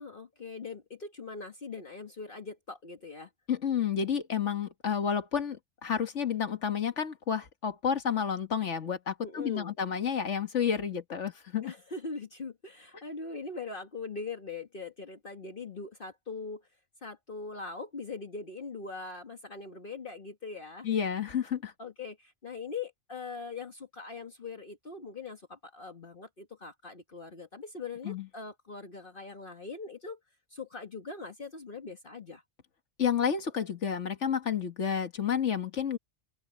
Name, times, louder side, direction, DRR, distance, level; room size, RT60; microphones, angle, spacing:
voice 1, 0.0-3.3 9.2-9.7 11.6-16.7 17.0-20.9 21.8-30.2 30.5-32.4, left 4 dB, 45° left, 1.8 m, -41 dB
voice 2, 3.5-11.7 20.8-21.7 28.1-28.3 33.0-36.0, left 7 dB, 75° left, 1.8 m, -30 dB
open air
omnidirectional pair, 1.2 m